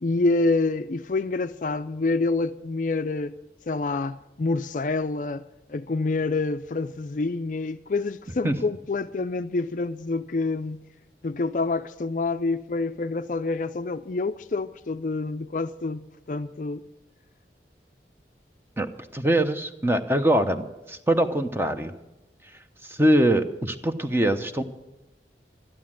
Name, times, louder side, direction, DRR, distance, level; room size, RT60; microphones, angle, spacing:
voice 1, 0.0-3.4 3.7-5.4 5.7-10.8 11.2-16.8, left 3 dB, 45° left, 0.4 m, -27 dB
voice 2, 18.8-21.9 22.9-24.6, right 1 dB, 15° right, 0.8 m, -23 dB
13.0 x 11.5 x 7.5 m
head